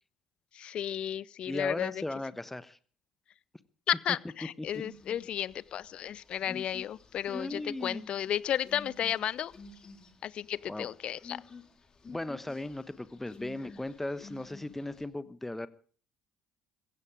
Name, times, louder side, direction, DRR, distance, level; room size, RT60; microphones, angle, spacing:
voice 1, 0.5-2.0 3.9-9.5 10.2-11.4, left 10 dB, 55° left, 22 dB, 0.6 m, -33 dB
voice 2, 1.5-2.8 4.6-4.7 6.4-6.6 7.3-8.1 10.7-10.9 12.1-15.7, left 2 dB, 10° left, 14 dB, 1.2 m, -37 dB
sound 1, 4.7-15.1, left 3 dB, 35° left, 3.4 m, -51 dB
16.0 x 15.5 x 4.9 m, 0.44 s
hypercardioid pair, 55°, 2 cm